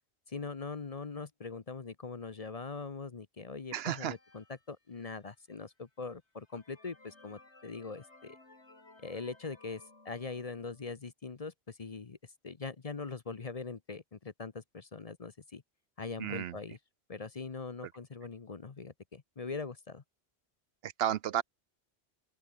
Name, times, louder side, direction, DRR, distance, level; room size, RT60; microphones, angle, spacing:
voice 1, 0.3-8.4 9.0-12.2 12.4-15.6 16.0-16.8 17.1-20.0, left 4 dB, 35° left, 0.9 m, -42 dB
sound 1, 3.7-5.4 5.9-6.0 6.4-10.9, left 2 dB, 85° left, 4.4 m, -60 dB
voice 2, 3.7-4.2 16.2-16.6 20.8-21.4, right 10 dB, 70° right, 0.8 m, -32 dB
open air
omnidirectional pair, 1.1 m